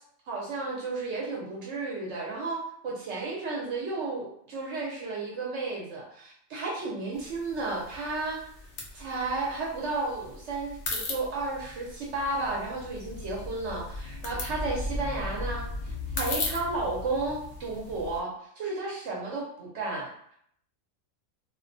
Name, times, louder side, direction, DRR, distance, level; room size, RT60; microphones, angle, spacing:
voice 1, 0.3-8.4 8.9-20.1, right 3 dB, 65° right, -3 dB, 0.9 m, -33 dB
sound 1, 7.1-18.2, left 2 dB, 80° left, 0.4 m, -37 dB
2.3 x 2.1 x 2.5 m, 0.68 s
omnidirectional pair, 1.4 m